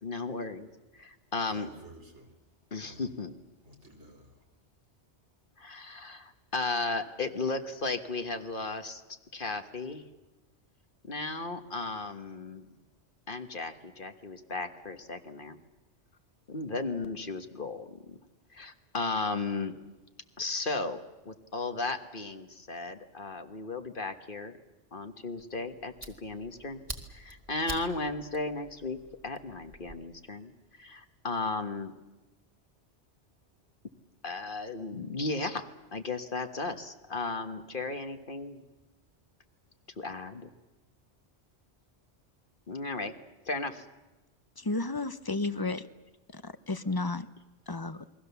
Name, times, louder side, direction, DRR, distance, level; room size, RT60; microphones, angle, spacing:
voice 1, 0.0-1.7 2.7-3.4 5.6-9.0 9.3-10.0 11.0-12.7 13.3-15.6 16.5-18.2 18.5-19.7 20.4-21.0 21.2-24.5 24.9-26.8 27.1-30.5 30.8-31.9 34.2-38.6 40.0-40.5 42.7-43.1 43.4-43.9, left 3 dB, 50° left, 8 dB, 1.5 m, -35 dB
voice 2, 1.5-2.5 2.8-3.1 3.6-4.5, right 1 dB, 85° right, 2 dB, 4.3 m, -53 dB
Fire, 25.4-30.0, right 1 dB, 30° right, 1.9 m, -46 dB
voice 3, 44.6-45.9 46.3-47.3 47.7-48.0, left 2 dB, 20° left, 13 dB, 0.8 m, -32 dB
28.5 x 22.0 x 7.0 m, 1.1 s
omnidirectional pair, 1.1 m